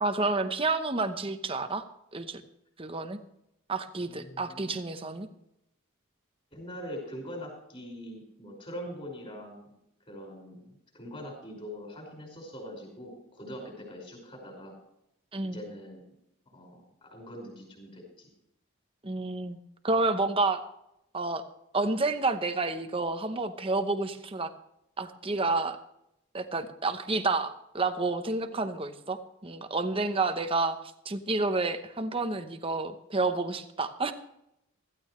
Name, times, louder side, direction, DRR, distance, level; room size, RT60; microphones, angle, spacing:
voice 1, 0.0-1.8 2.1-2.4 2.8-3.2 3.7-5.3 15.3-15.6 19.0-19.6 19.8-20.6 21.1-21.4 21.7-24.5 25.0-25.8 26.3-30.8 31.0-34.1, right 3 dB, 25° right, 8 dB, 0.9 m, -29 dB
voice 2, 4.1-4.8 6.5-9.7 10.1-14.7 15.4-16.0 16.5-18.3, equal, 25° left, 1 dB, 5.4 m, -43 dB
15.5 x 15.0 x 3.2 m, 0.81 s
head